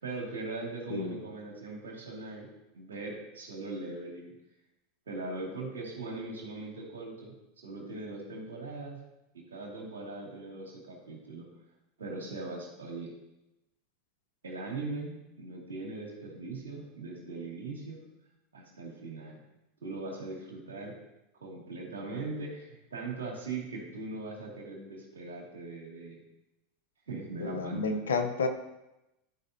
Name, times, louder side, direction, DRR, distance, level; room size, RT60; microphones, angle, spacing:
voice 1, 0.0-2.5 2.7-4.3 5.1-9.0 9.5-11.5 12.0-13.1 14.4-18.0 18.5-19.4 19.8-21.0 21.4-26.2 27.1-28.2, right 3 dB, 85° right, -2 dB, 2.3 m, -40 dB
voice 2, 27.4-28.5, left 4 dB, 85° left, 7 dB, 0.8 m, -30 dB
12.0 x 5.0 x 2.8 m, 0.94 s
hypercardioid pair, 90°, 0 cm